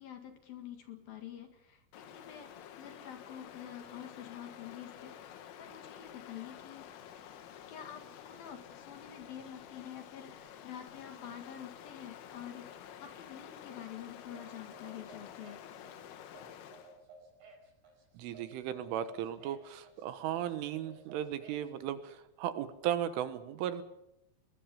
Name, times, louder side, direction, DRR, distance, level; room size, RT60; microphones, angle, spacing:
voice 1, 0.0-7.4 7.7-15.6, left 9 dB, 55° left, 6 dB, 3.2 m, -48 dB
Stream, 1.9-17.0, left 9 dB, 80° left, 4.1 m, -50 dB
sound 1, 13.8-21.7, right 3 dB, 55° right, 6.9 m, -56 dB
voice 2, 18.2-23.8, right 10 dB, 80° right, 11 dB, 3.7 m, -36 dB
22.5 x 21.0 x 7.0 m, 0.83 s
omnidirectional pair, 5.7 m